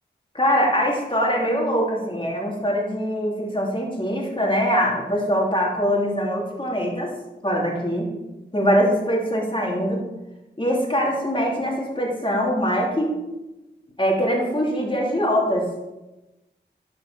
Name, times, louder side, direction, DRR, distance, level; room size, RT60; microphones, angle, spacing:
voice 1, 0.3-7.1 7.4-8.2 8.5-10.0 10.6-13.1 14.0-15.7, equal, 25° left, -2 dB, 3.4 m, -23 dB
11.0 x 5.7 x 5.2 m, 1.0 s
cardioid pair, 45°, 19 cm